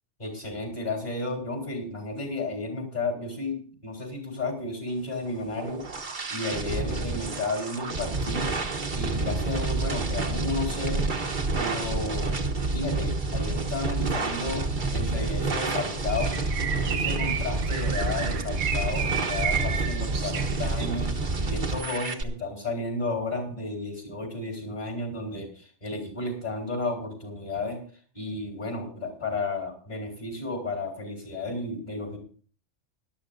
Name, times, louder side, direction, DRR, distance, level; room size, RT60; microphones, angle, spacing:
voice 1, 0.2-5.8 6.3-8.5 8.9-11.1 11.6-12.4 12.7-14.6 14.9-16.3 16.8-21.1 21.5-27.8 28.1-32.2, left 3 dB, 35° left, 2 dB, 4.0 m, -32 dB
sound 1, 5.3-22.2, right 3 dB, 45° right, 1.2 m, -29 dB
Bird, 16.1-21.0, right 8 dB, 85° right, 1.4 m, -32 dB
18.5 x 12.0 x 2.5 m, 0.43 s
omnidirectional pair, 1.3 m